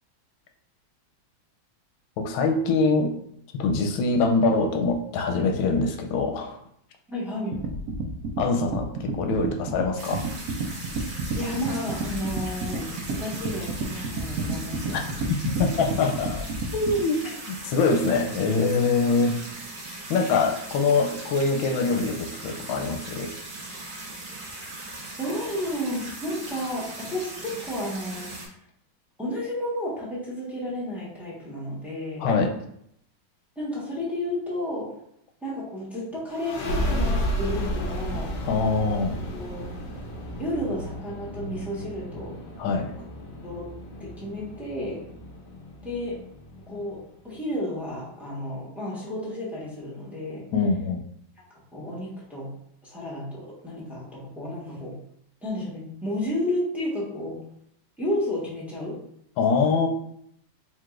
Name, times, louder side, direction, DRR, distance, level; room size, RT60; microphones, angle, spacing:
voice 1, 2.2-3.1 3.6-6.6 8.4-10.3 14.9-15.0 15.3-16.5 16.7-19.4 20.1-23.4 32.2-32.5 38.5-39.2 42.6-42.9 50.5-51.0 59.4-59.9, left 4 dB, 80° left, 4 dB, 1.3 m, -24 dB
voice 2, 7.1-7.6 11.3-15.3 15.6-15.7 25.2-28.3 29.2-32.3 33.6-34.9 35.4-38.3 39.3-39.7 40.4-42.3 43.0-43.1 43.4-43.7 44.0-45.0 45.8-46.2 46.7-47.0 47.2-50.4 51.7-52.5 52.8-54.9 55.4-57.4 58.0-59.0, left 1 dB, ahead, -7 dB, 0.9 m, -32 dB
sound 1, 7.5-17.0, right 3 dB, 85° right, 0.7 m, -31 dB
sound 2, 10.0-28.5, right 2 dB, 45° right, 1.2 m, -39 dB
sound 3, 36.3-47.6, equal, 60° left, 0.9 m, -33 dB
4.6 x 3.6 x 2.4 m, 0.71 s
omnidirectional pair, 2.2 m